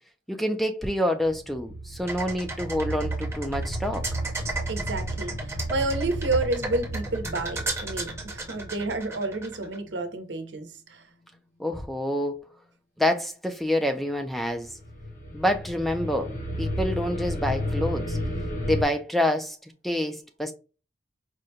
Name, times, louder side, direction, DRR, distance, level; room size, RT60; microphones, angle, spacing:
voice 1, 0.3-4.1 11.6-12.4 13.0-14.7 15.3-16.3 16.6-18.2 18.6-19.6 19.8-20.5, left 1 dB, ahead, 0.4 m, -27 dB
sound 1, 1.2-9.9 14.4-18.8, equal, 45° left, 0.9 m, -33 dB
sound 2, 2.1-9.8, right 3 dB, 15° right, 0.8 m, -35 dB
voice 2, 4.7-11.0, right 2 dB, 85° right, 0.8 m, -30 dB
4.9 x 2.2 x 2.7 m
head